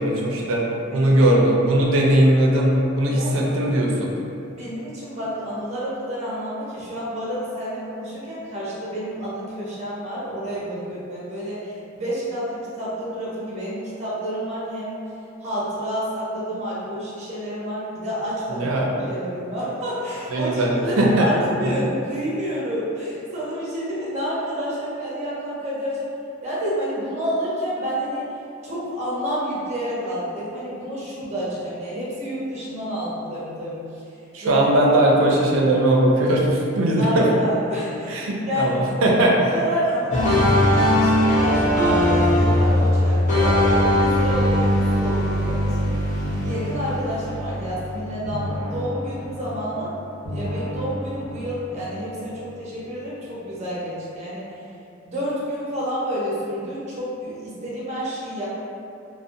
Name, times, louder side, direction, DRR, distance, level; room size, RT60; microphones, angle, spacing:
voice 1, 0.0-0.6 0.9-4.1 18.5-18.9 20.3-21.3 21.7-21.8 34.3-37.3 38.1-39.5 40.8-40.9, right 1 dB, 80° right, -2 dB, 0.4 m, -19 dB
voice 2, 3.0-3.4 4.5-15.0 15.4-18.7 19.1-26.1 26.4-28.3 28.6-34.0 34.4-34.6 37.0-38.8 39.5-45.9 46.4-49.9 50.3-54.6 55.0-58.5, equal, 35° right, -7 dB, 0.6 m, -29 dB
sound 1, 40.1-48.0 48.3-49.8 50.3-51.8, left 1 dB, 40° left, 0.6 m, -21 dB
2.4 x 2.0 x 2.6 m, 2.6 s
head